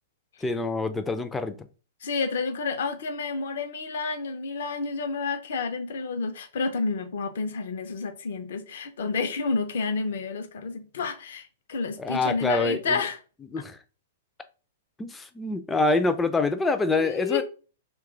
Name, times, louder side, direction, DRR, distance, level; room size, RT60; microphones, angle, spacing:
voice 1, 0.4-1.7 12.0-13.0 13.5-13.8 15.0-17.4, left 3 dB, 10° left, 0.4 m, -26 dB
voice 2, 2.0-13.2 16.9-17.4, left 4 dB, 60° left, 0.6 m, -30 dB
2.9 x 2.3 x 3.7 m
figure-of-eight pair, 105°, 0 cm